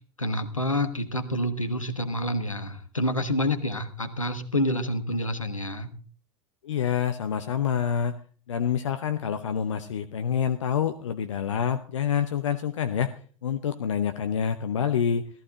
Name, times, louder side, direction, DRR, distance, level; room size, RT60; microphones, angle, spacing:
voice 1, 0.2-5.9, left 1 dB, 90° left, 7 dB, 1.3 m, -28 dB
voice 2, 6.6-8.2 8.5-13.1 13.4-15.3, left 8 dB, 70° left, 9 dB, 0.8 m, -27 dB
14.5 x 14.0 x 3.8 m, 0.41 s
figure-of-eight pair, 80°, 17 cm